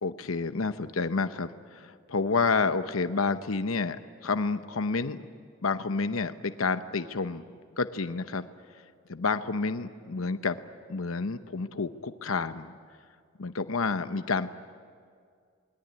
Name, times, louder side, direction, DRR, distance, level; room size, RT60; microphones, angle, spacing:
voice 1, 0.0-5.2 5.6-7.4 7.8-8.5 9.1-10.6 10.9-12.7 13.4-14.5, left 4 dB, 90° left, 10 dB, 0.9 m, -29 dB
28.0 x 21.0 x 9.6 m, 2.1 s
head